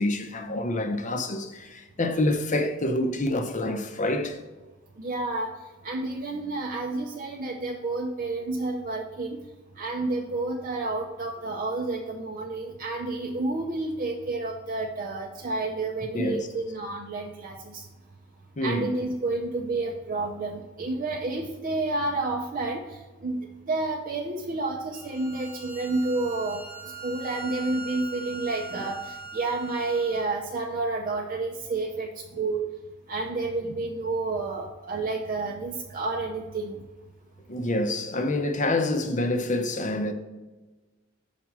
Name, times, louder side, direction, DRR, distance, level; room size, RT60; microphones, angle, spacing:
voice 1, 0.0-4.4 16.1-16.5 18.6-18.9 28.7-28.8 37.5-40.1, left 1 dB, 40° left, 0.7 m, -27 dB
voice 2, 5.0-5.5 5.8-9.4 9.8-17.9 18.6-26.6 27.0-32.1 32.4-32.7 33.1-36.8, right 3 dB, 45° right, 0.6 m, -30 dB
Bowed string instrument, 24.9-30.3, right 5 dB, 10° right, 0.7 m, -41 dB
5.9 x 4.1 x 6.0 m
head